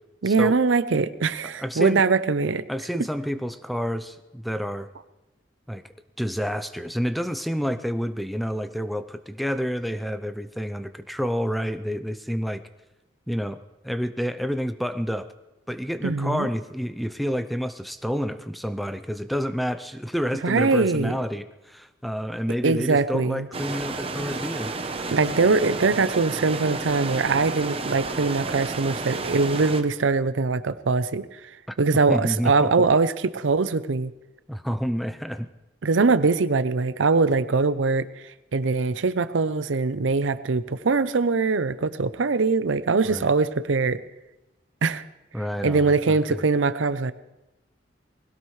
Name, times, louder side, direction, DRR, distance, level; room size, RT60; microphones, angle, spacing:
voice 1, 0.2-2.6 16.0-16.5 20.4-21.1 22.6-23.5 25.1-31.3 31.8-34.1 35.8-38.1 38.5-44.0 44.8-45.0 45.6-47.1, right 4 dB, 85° right, 14 dB, 0.6 m, -22 dB
voice 2, 1.5-2.0 2.7-4.9 5.7-5.8 6.2-12.6 13.3-13.6 13.8-15.3 15.7-24.8 31.7-31.8 32.1-32.9 34.5-35.5 43.0-43.3 45.3-46.4, equal, ahead, 10 dB, 0.5 m, -29 dB
sound 1, 23.5-29.8, right 3 dB, 30° right, 0.8 m, -31 dB
20.5 x 17.0 x 3.2 m, 1.0 s
head